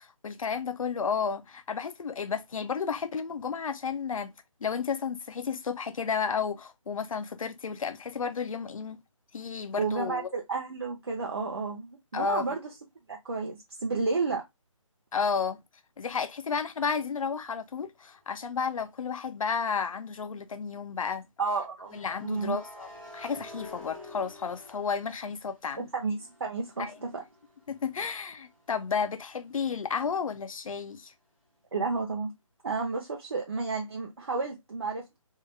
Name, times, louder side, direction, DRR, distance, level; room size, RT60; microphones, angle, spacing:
voice 1, 0.2-4.3 4.6-9.0 9.3-10.3 12.1-12.6 15.1-15.6 16.0-21.2 21.9-25.9 26.8-27.0 27.7-31.1, left 6 dB, 75° left, 0.5 m, -32 dB
voice 2, 9.8-12.7 13.1-14.4 21.4-21.9 22.2-22.6 25.8-27.2 31.7-32.3 32.6-35.2, right 4 dB, 50° right, 0.7 m, -31 dB
sound 1, 18.5-18.7 21.8-25.7 26.1-29.7, left 2 dB, ahead, 0.5 m, -49 dB
3.2 x 2.2 x 3.0 m
hypercardioid pair, 175°, 17 cm